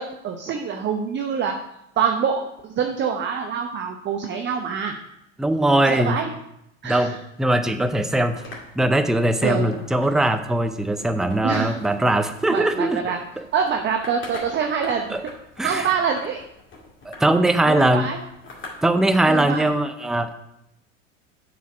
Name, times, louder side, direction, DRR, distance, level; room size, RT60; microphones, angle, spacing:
voice 1, 0.0-1.5 2.0-2.5 2.8-4.9 5.8-6.3 6.8-7.1 9.4-9.8 11.4-11.8 12.5-13.2 13.5-15.2 15.6-16.4 17.6-18.2 19.3-19.8, right 6 dB, 30° right, 3 dB, 0.8 m, -25 dB
voice 2, 5.4-6.2 6.8-8.4 8.8-13.0 13.4-13.5 15.1-15.2 15.6-15.9 17.1-18.1 18.8-20.3, right 1 dB, ahead, 8 dB, 0.4 m, -20 dB
sound 1, 7.7-19.7, left 2 dB, 30° left, 2.2 m, -44 dB
7.9 x 4.8 x 5.0 m, 0.81 s
hypercardioid pair, 85°, 39 cm